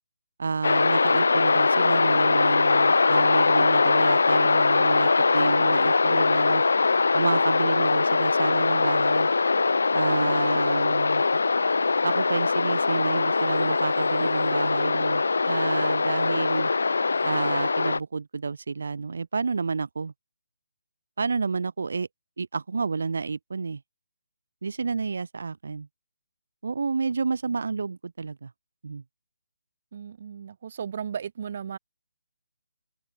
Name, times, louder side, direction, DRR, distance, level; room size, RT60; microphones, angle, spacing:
voice 1, 0.4-6.6 7.1-9.3 9.9-11.4 12.0-16.7 17.2-20.1 21.2-22.1 22.4-23.8 24.6-25.9 26.6-28.5 28.8-29.0, right 4 dB, 65° right, 0.4 m, -30 dB
sound 1, 0.6-18.0, left 4 dB, 80° left, 0.8 m, -22 dB
voice 2, 29.9-31.8, right 7 dB, 40° right, 1.1 m, -35 dB
open air
hypercardioid pair, 170°, 0 cm